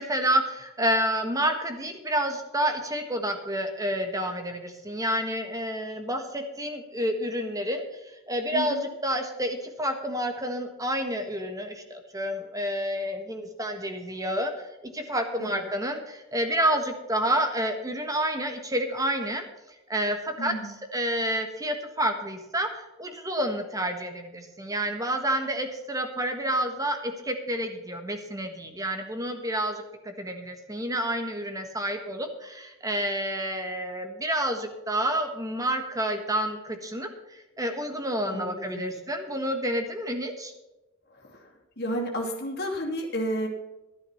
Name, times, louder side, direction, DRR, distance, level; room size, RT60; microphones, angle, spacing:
voice 1, 0.0-19.4 19.9-40.5, right 1 dB, 15° right, 6 dB, 1.4 m, -29 dB
voice 2, 8.5-8.8 15.4-15.6 20.4-20.7 38.3-38.9 41.2-41.5 41.8-43.5, equal, 50° left, -1 dB, 2.6 m, -32 dB
12.0 x 10.5 x 5.7 m, 1.0 s
head